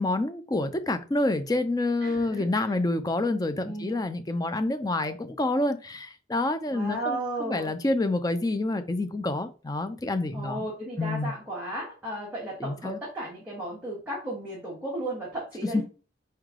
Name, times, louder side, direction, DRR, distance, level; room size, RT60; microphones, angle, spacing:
voice 1, 0.0-10.6 11.0-11.3 12.6-13.0 15.7-15.8, left 2 dB, 20° left, 0.4 m, -28 dB
voice 2, 2.0-2.7 3.6-4.1 6.7-7.7 10.3-15.8, right 1 dB, 10° right, 1.3 m, -35 dB
4.5 x 3.2 x 3.6 m
head